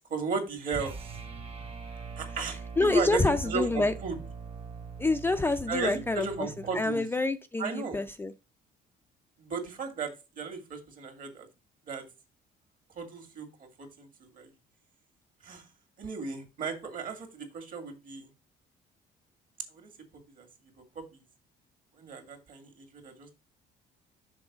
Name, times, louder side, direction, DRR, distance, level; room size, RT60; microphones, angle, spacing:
voice 1, 0.1-0.9 2.2-4.2 5.7-7.0 7.6-8.0 9.4-11.5 11.9-12.0 13.0-14.5 15.4-15.6 16.0-18.3 19.7-19.9 20.4-20.5 21.0-21.1 22.0-22.7 23.0-23.3, right 5 dB, 55° right, 2.1 m, -35 dB
sound 1, 0.7-7.1, right 5 dB, 35° right, 1.2 m, -42 dB
voice 2, 2.5-3.9 5.0-8.3, left 2 dB, 15° left, 0.4 m, -27 dB
6.3 x 3.8 x 6.1 m
cardioid pair, 110°, 17 cm